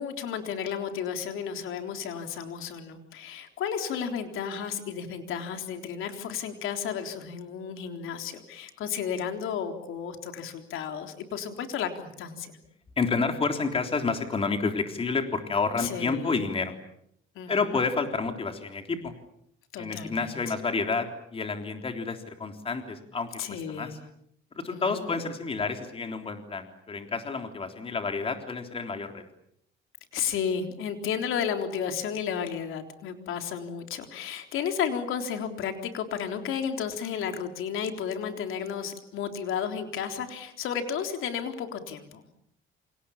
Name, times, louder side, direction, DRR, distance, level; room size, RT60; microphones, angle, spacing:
voice 1, 0.0-12.5 15.8-16.3 17.4-17.5 19.7-20.3 23.4-24.0 24.7-25.1 30.1-42.2, left 7 dB, 70° left, 6 dB, 3.7 m, -33 dB
voice 2, 13.0-16.8 17.5-19.1 19.8-24.0 24.5-29.2, left 4 dB, 25° left, 5 dB, 3.6 m, -30 dB
28.5 x 27.0 x 7.2 m, 0.72 s
cardioid pair, 130°, 21 cm